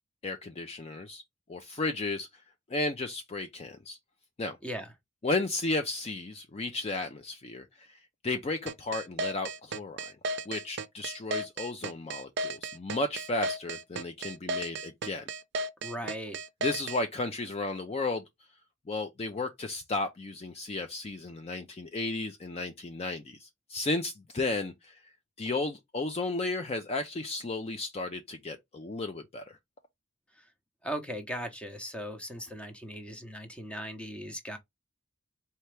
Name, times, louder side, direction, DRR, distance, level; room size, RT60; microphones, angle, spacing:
voice 1, 0.2-1.2 1.5-2.4 2.7-4.0 4.4-4.6 5.2-10.1 10.5-15.2 16.6-18.2 18.9-25.0 25.4-29.6, left 2 dB, 30° left, 0.4 m, -34 dB
voice 2, 4.6-4.9 15.8-16.4 30.3-30.5 30.8-34.6, equal, 5° left, 0.8 m, -38 dB
sound 1, 8.7-17.0, right 2 dB, 55° right, 0.5 m, -34 dB
4.3 x 2.8 x 3.2 m
head